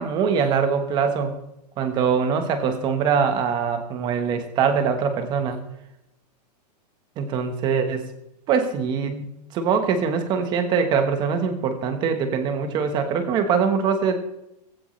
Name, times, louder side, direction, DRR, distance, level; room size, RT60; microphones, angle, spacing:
voice 1, 0.0-1.4 1.8-5.6 7.2-8.1 8.5-14.4, right 6 dB, 20° right, 8 dB, 1.2 m, -23 dB
16.0 x 14.5 x 3.2 m, 0.85 s
supercardioid pair, 170°, 21 cm